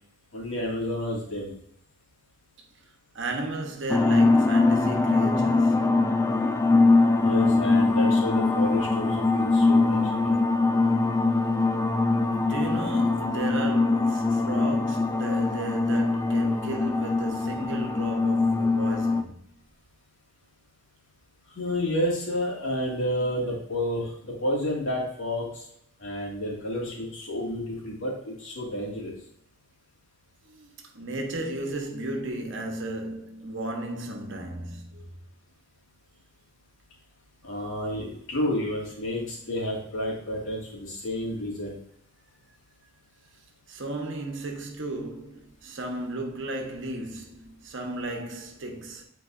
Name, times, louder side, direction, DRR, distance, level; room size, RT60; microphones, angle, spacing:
voice 1, 0.3-1.5 7.2-10.3 21.6-25.6 26.0-29.1 37.4-41.8, left 1 dB, 80° left, 2.4 m, -30 dB
voice 2, 3.1-5.9 12.4-19.4 30.5-35.0 43.7-49.0, right 2 dB, 65° right, 1.2 m, -34 dB
sound 1, 3.9-19.2, left 3 dB, 15° left, 0.4 m, -22 dB
9.3 x 4.5 x 2.6 m
head